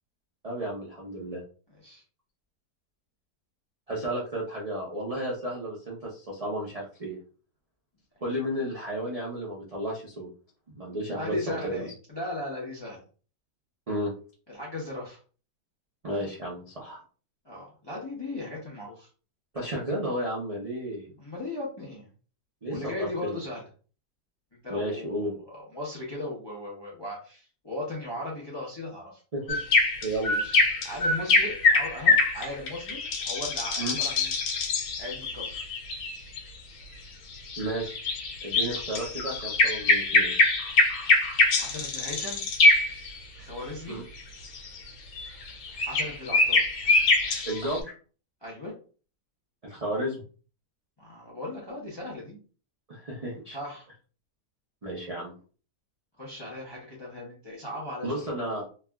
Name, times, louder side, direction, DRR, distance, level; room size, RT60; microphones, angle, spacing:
voice 1, 0.4-1.4 3.9-7.2 8.2-10.3 10.7-11.9 13.9-14.1 16.0-17.0 19.5-21.1 22.6-23.4 24.7-25.3 29.3-29.6 30.0-30.3 33.8-34.0 37.6-38.0 38.4-40.3 43.9-44.0 47.4-47.9 49.6-50.2 52.9-53.6 54.8-55.3 58.0-58.6, right 1 dB, 70° right, -5 dB, 0.3 m, -32 dB
voice 2, 11.2-13.0 14.5-15.2 17.4-19.1 21.2-22.1 22.7-23.6 24.6-25.2 25.5-29.2 30.3-34.3 35.0-35.6 41.6-42.4 43.4-44.0 45.9-46.6 48.4-48.7 51.0-52.4 53.5-53.9 56.2-58.2, left 1 dB, 35° left, -4 dB, 0.4 m, -37 dB
sound 1, 29.5-36.4 37.3-43.2 44.2-47.8, left 3 dB, 75° left, 1.3 m, -24 dB
3.2 x 2.4 x 2.2 m, 0.38 s
omnidirectional pair, 1.8 m